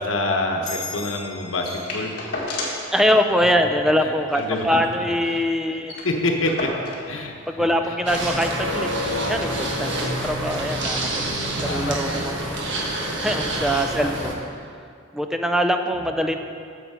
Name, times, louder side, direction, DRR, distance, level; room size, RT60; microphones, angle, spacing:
voice 1, 0.0-2.1 4.0-4.8 5.7-5.8 6.0-6.7 7.1-7.9 11.7-12.3 14.0-14.3 15.9-16.1, left 2 dB, 80° left, 2 dB, 1.1 m, -27 dB
sound 1, 0.7-3.8, left 4 dB, 40° left, 1.7 m, -39 dB
sound 2, 1.6-2.9 3.2-3.3 3.6-3.8 4.2-5.3 5.6-5.7 5.9-7.1 8.0-8.1, left 2 dB, 55° left, 1.8 m, -32 dB
voice 2, 2.9-5.9 7.5-8.9 9.2-12.4 13.2-14.4 15.1-16.4, equal, ahead, 5 dB, 0.5 m, -23 dB
sound 3, 8.1-14.3, right 1 dB, 65° right, 1.3 m, -27 dB
8.5 x 7.2 x 5.6 m, 2.3 s
head